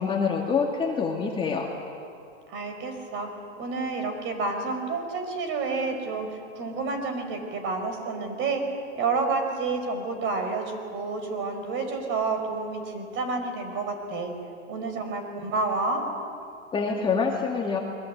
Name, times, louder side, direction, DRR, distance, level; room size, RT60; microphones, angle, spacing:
voice 1, 0.0-1.7 16.7-17.8, left 5 dB, 15° left, -1 dB, 2.2 m, -26 dB
voice 2, 2.5-3.3 3.6-8.6 8.9-14.3 14.7-16.0, right 3 dB, 30° right, 6 dB, 5.1 m, -29 dB
29.0 x 22.5 x 8.8 m, 2.5 s
hypercardioid pair, 145°, 37 cm